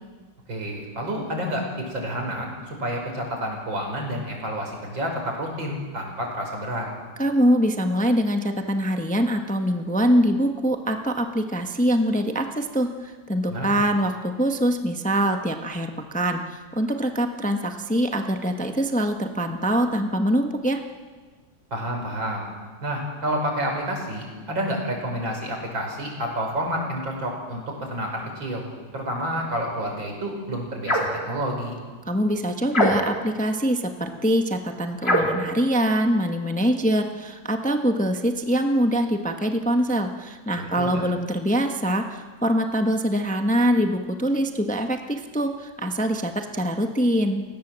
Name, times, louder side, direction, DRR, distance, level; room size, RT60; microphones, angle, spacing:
voice 1, 0.5-6.9 13.5-13.7 21.7-22.5 22.8-28.6 28.9-31.8 40.6-41.0, equal, 85° right, 1 dB, 6.0 m, -29 dB
voice 2, 7.2-20.8 32.1-47.4, equal, 5° left, 5 dB, 1.1 m, -24 dB
sound 1, 30.8-31.2 32.7-33.3 35.0-35.4, equal, 30° left, 3.8 m, -22 dB
30.0 x 17.0 x 7.6 m, 1.5 s
omnidirectional pair, 2.0 m